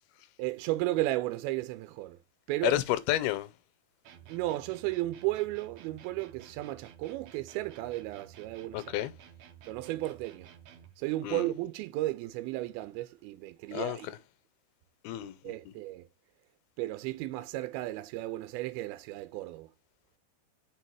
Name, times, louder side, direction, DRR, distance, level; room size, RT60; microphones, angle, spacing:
voice 1, 0.4-2.2 2.5-2.8 4.3-9.0 9.7-10.5 11.0-14.1 15.4-16.1 16.8-19.7, right 17 dB, 85° right, 2.4 m, -34 dB
voice 2, 2.6-3.5 8.7-9.1 11.2-11.5 13.7-14.0 15.0-15.5, left 15 dB, 85° left, 2.5 m, -30 dB
sound 1, 4.0-11.0, right 9 dB, 70° right, 1.7 m, -53 dB
5.4 x 4.6 x 4.6 m
omnidirectional pair, 4.4 m